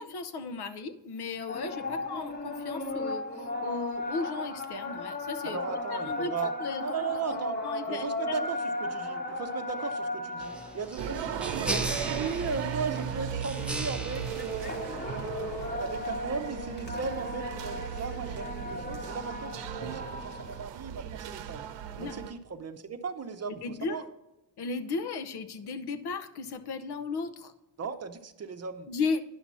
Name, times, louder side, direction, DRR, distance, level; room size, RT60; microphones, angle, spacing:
voice 1, 0.0-5.6 5.9-6.8 7.3-8.1 22.0-22.2 23.6-24.0 24.6-27.5 28.9-29.2, left 4 dB, 65° left, 8 dB, 0.9 m, -35 dB
sound 1, 1.5-20.6, left 2 dB, 25° left, 1.1 m, -36 dB
voice 2, 5.4-6.5 6.8-7.6 7.9-14.8 15.1-21.7 22.0-24.0 27.8-28.9, right 5 dB, 35° right, 8 dB, 0.7 m, -37 dB
sound 2, 10.4-15.4, right 1 dB, 5° right, 0.7 m, -38 dB
sound 3, 11.0-22.3, right 9 dB, 85° right, 0.8 m, -37 dB
11.0 x 5.9 x 4.1 m, 0.98 s
cardioid pair, 105°, 43 cm